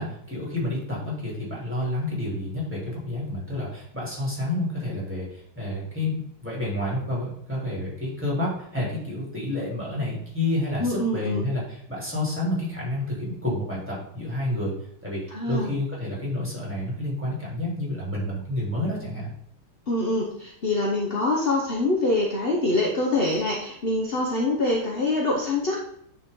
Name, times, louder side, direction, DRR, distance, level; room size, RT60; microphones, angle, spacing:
voice 1, 0.0-14.7 15.0-19.3, left 1 dB, 5° right, -5 dB, 3.0 m, -29 dB
voice 2, 10.8-11.4 15.3-15.7 19.9-25.8, left 2 dB, 45° left, -2 dB, 0.7 m, -25 dB
9.3 x 4.5 x 3.7 m, 0.72 s
omnidirectional pair, 2.3 m